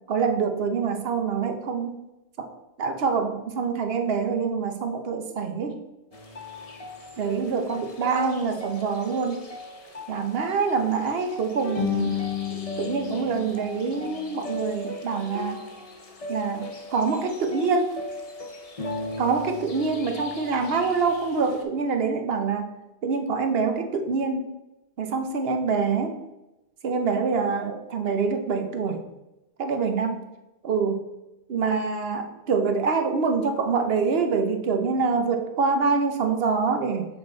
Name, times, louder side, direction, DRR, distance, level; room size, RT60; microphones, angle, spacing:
voice 1, 0.1-2.0 2.4-2.5 2.8-5.8 7.2-9.5 10.1-12.1 12.5-15.6 16.3-18.0 19.2-22.7 23.0-24.5 25.0-26.1 26.8-29.0 29.6-30.2 30.6-31.0 31.5-37.1, right 5 dB, 65° right, 6 dB, 1.0 m, -25 dB
sound 1, 6.1-21.6, left 4 dB, 35° left, 0.8 m, -35 dB
7.5 x 3.8 x 3.8 m, 0.96 s
omnidirectional pair, 1.1 m